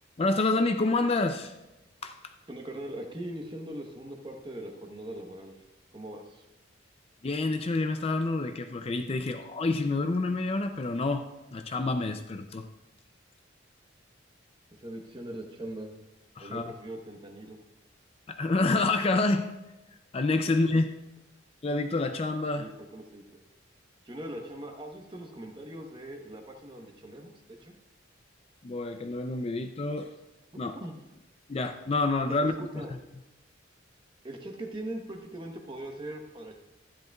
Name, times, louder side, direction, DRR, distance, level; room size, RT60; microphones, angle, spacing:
voice 1, 0.2-1.5 2.0-2.2 7.2-11.3 11.5-12.7 16.4-16.7 18.3-19.5 20.1-20.9 21.6-22.7 28.6-30.1 30.6-30.7 31.5-32.5, left 2 dB, 30° left, 7 dB, 0.4 m, -28 dB
voice 2, 2.5-5.5 5.9-6.4 14.8-15.9 16.4-17.6 20.4-20.5 22.5-23.2 24.0-27.7 30.7-30.9 32.6-32.9 34.2-36.5, right 1 dB, 25° right, 3 dB, 1.0 m, -41 dB
12.0 x 10.0 x 2.3 m, 0.99 s
head